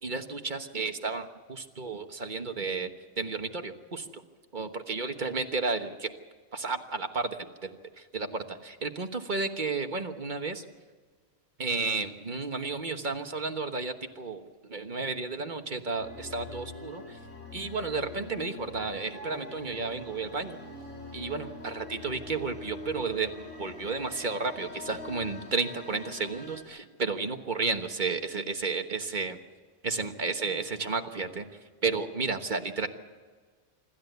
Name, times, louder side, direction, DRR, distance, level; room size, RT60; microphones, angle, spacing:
voice 1, 0.0-2.9 3.2-4.2 4.5-6.1 6.5-10.6 11.6-17.2 17.5-20.6 21.1-29.4 29.8-31.5 31.8-32.9, right 4 dB, 35° right, 6 dB, 1.3 m, -32 dB
sound 1, 16.0-26.6, left 3 dB, 60° left, 3.8 m, -44 dB
26.0 x 13.5 x 8.1 m, 1.5 s
omnidirectional pair, 1.4 m